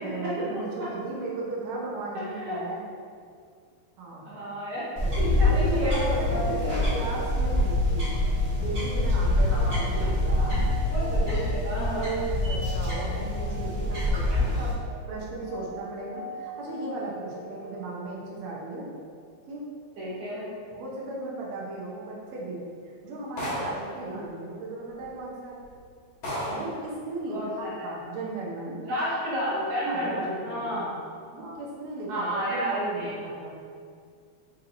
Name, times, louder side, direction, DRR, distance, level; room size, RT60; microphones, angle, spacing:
voice 1, 0.0-2.8 4.0-4.3 5.0-8.2 8.6-10.7 11.2-14.7 15.1-18.9 19.5-19.7 20.7-22.6 22.8-25.6 26.5-28.8 29.8-31.0 31.3-33.6, right 2 dB, 90° right, -4 dB, 1.3 m, -36 dB
voice 2, 2.1-2.6 4.3-4.8 5.2-6.8 9.5-9.7 10.9-12.2 20.0-20.4 23.9-24.2 27.3-27.9 28.8-30.9 31.4-31.5 32.1-33.2, equal, 75° right, -10 dB, 2.6 m, -31 dB
sound 1, 5.0-14.7, left 1 dB, 45° right, 0.7 m, -25 dB
sound 2, 6.2-19.0, equal, 75° left, 2.2 m, -43 dB
sound 3, 23.4-23.9 25.0-25.1 25.6-25.7 26.2-26.8, equal, 60° left, 2.1 m, -32 dB
5.4 x 2.7 x 2.6 m, 2.2 s
omnidirectional pair, 3.6 m